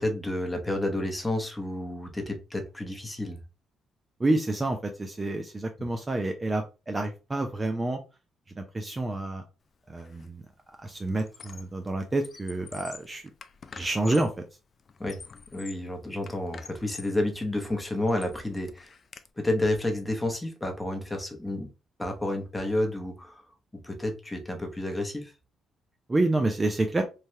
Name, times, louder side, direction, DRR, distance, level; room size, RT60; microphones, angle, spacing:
voice 1, 0.0-3.4 15.0-15.2 15.5-18.9 19.4-21.7 22.0-23.5 23.8-25.3, left 1 dB, 10° left, 0.8 m, -30 dB
voice 2, 4.2-8.0 8.6-9.4 9.9-10.4 10.8-13.3 13.7-14.3 26.1-27.0, right 2 dB, 25° right, 0.4 m, -28 dB
Squeak, 10.0-10.3 10.6-11.8 12.1-14.4 14.9-15.9 16.3-17.2 17.7-19.3, left 5 dB, 45° left, 0.3 m, -47 dB
3.2 x 2.2 x 2.7 m
cardioid pair, 90°, 0 cm